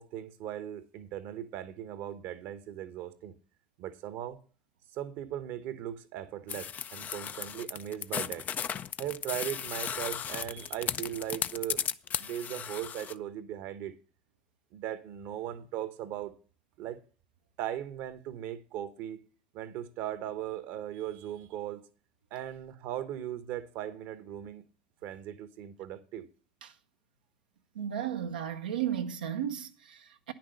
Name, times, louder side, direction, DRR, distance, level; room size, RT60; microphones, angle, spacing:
voice 1, 0.0-3.3 3.8-4.4 4.9-8.4 9.0-11.8 12.2-14.0 14.7-16.3 16.8-17.0 17.6-19.2 19.5-21.8 22.3-24.6 25.0-26.3, right 11 dB, 60° right, 1.0 m, -38 dB
sound 1, 6.5-13.1, left 8 dB, 35° left, 0.4 m, -35 dB
voice 2, 27.7-30.3, right 10 dB, 85° right, 0.7 m, -34 dB
10.0 x 6.0 x 6.5 m
hypercardioid pair, 75°, 4 cm